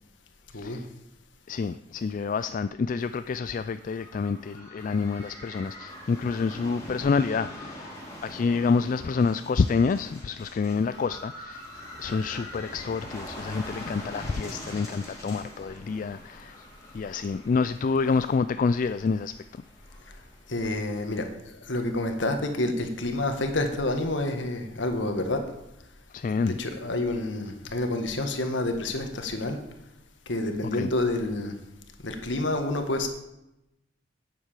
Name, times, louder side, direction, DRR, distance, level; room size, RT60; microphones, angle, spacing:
voice 1, 0.5-0.9 1.5-11.7 12.0-16.6 16.9-19.3 26.1-26.6 30.7-30.9, left 4 dB, 45° left, 13 dB, 0.3 m, -28 dB
sound 1, 3.7-21.2, left 1 dB, 15° left, 3.1 m, -43 dB
voice 2, 20.5-25.4 26.3-29.6 30.3-31.6 32.0-33.1, left 2 dB, 80° left, 5 dB, 1.7 m, -28 dB
9.4 x 8.1 x 7.5 m, 0.88 s
head